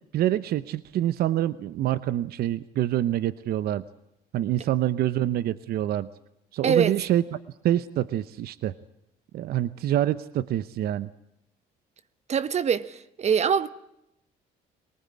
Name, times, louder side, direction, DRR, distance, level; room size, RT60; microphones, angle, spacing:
voice 1, 0.1-3.8 4.3-6.1 6.5-7.2 7.6-8.7 9.3-11.1, right 12 dB, 65° right, 0.8 m, -26 dB
voice 2, 12.3-13.7, right 7 dB, 40° right, 1.1 m, -23 dB
23.5 x 19.0 x 9.7 m
cardioid pair, 110°, 17 cm